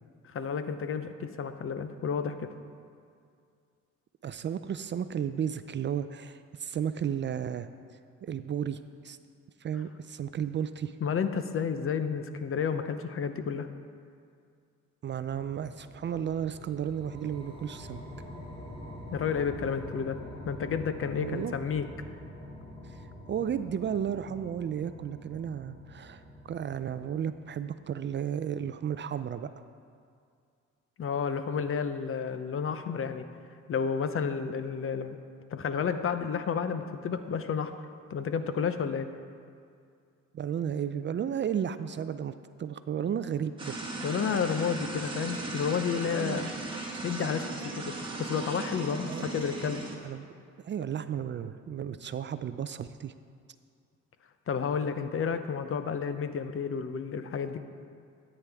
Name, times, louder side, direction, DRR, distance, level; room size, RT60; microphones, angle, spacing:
voice 1, 0.2-2.5 11.0-13.7 19.1-20.2 20.4-21.9 31.0-33.3 33.7-35.2 35.5-37.7 38.1-39.1 44.0-46.5 47.0-47.9 48.2-49.8 54.5-57.6, left 6 dB, 45° left, 9 dB, 0.7 m, -31 dB
voice 2, 4.2-7.7 8.2-8.8 9.0-9.2 9.6-11.0 15.0-18.0 21.2-21.6 23.3-26.2 26.5-29.5 40.3-43.8 46.2-46.5 49.1-49.3 50.0-50.3 50.6-53.1, right 8 dB, 40° right, 12 dB, 0.4 m, -33 dB
sound 1, 15.2-27.7, left 1 dB, 15° left, 2.3 m, -46 dB
sound 2, 43.6-50.0, right 2 dB, 15° right, 1.8 m, -37 dB
13.0 x 9.0 x 3.5 m, 2.3 s
cardioid pair, 90°, 30 cm